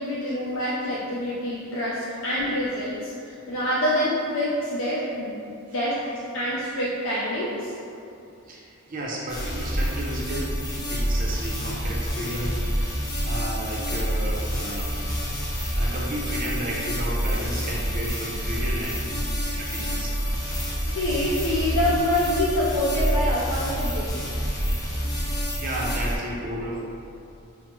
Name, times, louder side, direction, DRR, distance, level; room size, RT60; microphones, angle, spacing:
voice 1, 0.0-3.1 3.5-5.4 5.7-6.0 6.3-7.7 20.8-24.3, left 1 dB, 65° left, -6 dB, 0.5 m, -26 dB
voice 2, 8.5-13.0 13.2-14.9 15.4-15.5 15.7-20.1 20.8-21.0 25.1-26.8, right 1 dB, 40° right, -4 dB, 0.5 m, -33 dB
sound 1, 9.3-26.2, equal, 15° left, 0.5 m, -27 dB
5.8 x 2.0 x 2.9 m, 2.6 s
head